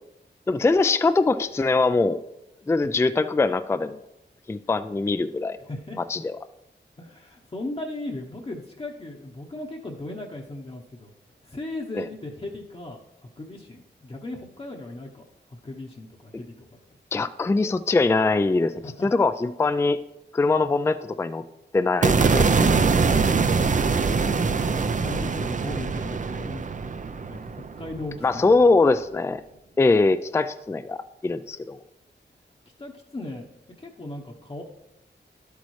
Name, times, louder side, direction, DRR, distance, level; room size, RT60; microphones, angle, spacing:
voice 1, 0.5-2.2 2.7-4.0 4.5-5.6 6.1-6.3 11.9-12.0 17.1-18.7 19.0-20.0 20.3-21.4 21.7-23.2 28.2-29.4 29.8-31.8, left 3 dB, 15° left, 12 dB, 0.3 m, -22 dB
voice 2, 5.6-6.0 7.0-11.1 11.4-16.5 18.8-19.1 22.2-22.7 24.7-26.9 27.3-28.7 32.8-33.4 33.8-34.6, left 2 dB, 30° left, -1 dB, 0.9 m, -37 dB
sound 1, 22.0-28.3, right 4 dB, 40° right, 0.5 m, -23 dB
11.5 x 8.3 x 3.2 m, 0.89 s
wide cardioid pair, 85°, 19 cm